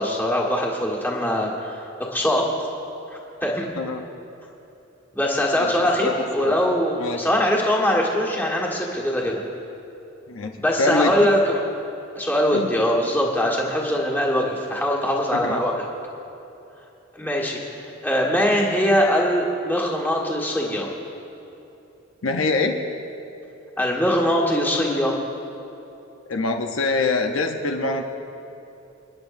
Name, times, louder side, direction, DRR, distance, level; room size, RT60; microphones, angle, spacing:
voice 1, 0.0-1.8 2.1-2.4 3.4-3.7 5.1-9.4 10.6-11.6 12.2-15.9 17.1-17.6 18.0-20.9 23.8-25.1, equal, 10° left, -3 dB, 1.5 m, -22 dB
voice 2, 10.3-11.1 12.5-12.7 15.3-15.6 22.2-22.8 26.3-28.1, left 3 dB, 90° left, 4 dB, 0.8 m, -24 dB
28.0 x 10.0 x 2.6 m, 2.9 s
head